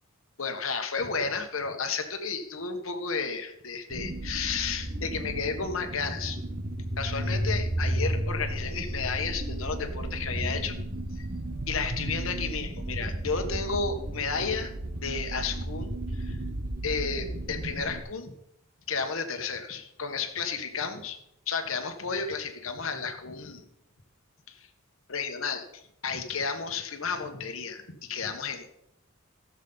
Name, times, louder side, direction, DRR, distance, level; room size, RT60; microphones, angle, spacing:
voice 1, 0.4-6.4 7.0-10.8 11.1-11.3 11.7-14.7 15.0-16.5 16.8-18.4 18.9-21.2 21.5-23.6 24.5-24.7 25.1-28.8, left 5 dB, 70° left, 6 dB, 1.3 m, -32 dB
sound 1, 3.9-18.0, right 1 dB, 45° right, 1.4 m, -33 dB
15.5 x 7.4 x 4.0 m, 0.79 s
head